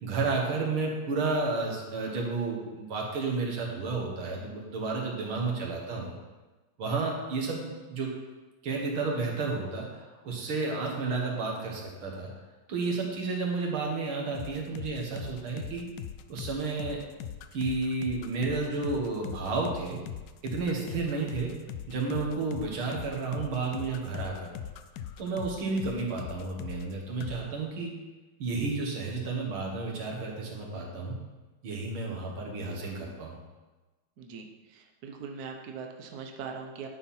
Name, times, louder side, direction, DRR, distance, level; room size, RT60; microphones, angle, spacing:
voice 1, 0.0-6.2 6.8-8.1 8.6-12.3 12.7-15.9 16.3-17.0 17.5-20.0 20.4-21.5 21.9-24.5 25.2-27.9 28.4-31.2 31.6-33.4, right 3 dB, 80° right, -1 dB, 2.3 m, -31 dB
sound 1, 14.3-26.9 27.2-27.4, left 9 dB, 80° left, 0.8 m, -40 dB
voice 2, 34.2-36.9, right 5 dB, 60° right, 3 dB, 1.2 m, -41 dB
10.5 x 4.4 x 5.6 m, 1.2 s
omnidirectional pair, 2.3 m